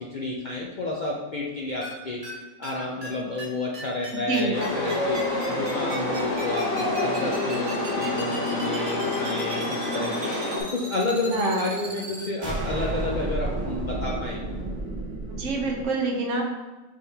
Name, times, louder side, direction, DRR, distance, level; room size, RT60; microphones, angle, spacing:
voice 1, 0.1-2.2 2.6-5.2 5.5-10.3 10.6-14.4, left 2 dB, 60° left, -3 dB, 0.5 m, -30 dB
sound 1, 1.8-1.9 2.2-2.3 2.6-2.7 3.0-3.1 3.4-3.5 3.7-15.8, right 2 dB, 40° right, 1.2 m, -33 dB
voice 2, 4.1-4.6 11.3-11.9 15.3-16.4, right 3 dB, 70° right, 1 dB, 1.1 m, -27 dB
Chatter / Subway metro underground, 4.5-10.6, left 2 dB, 80° left, 1.4 m, -27 dB
5.6 x 3.3 x 2.8 m, 1.1 s
omnidirectional pair, 1.4 m